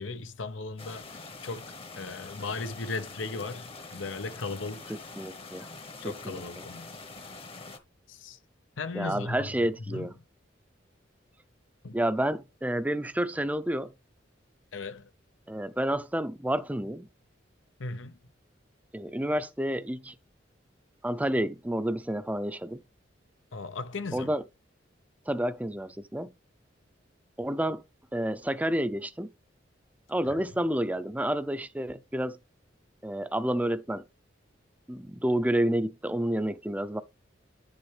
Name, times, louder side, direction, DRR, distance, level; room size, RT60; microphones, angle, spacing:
voice 1, 0.0-5.0 6.0-7.0 8.1-8.4 8.8-10.1 11.8-12.0 14.7-15.1 17.8-18.2 23.5-24.3, left 3 dB, 85° left, 0.8 m, -37 dB
sound 1, 0.8-7.8, left 3 dB, 30° left, 1.0 m, -45 dB
voice 2, 5.2-5.7 6.0-6.4 8.9-10.1 11.9-13.9 15.5-17.1 18.9-20.2 21.0-22.8 24.1-24.4 25.3-26.3 27.4-27.8 28.1-29.3 30.1-32.4 33.0-34.0 34.9-37.0, right 1 dB, 10° right, 0.5 m, -29 dB
9.9 x 5.5 x 3.4 m
head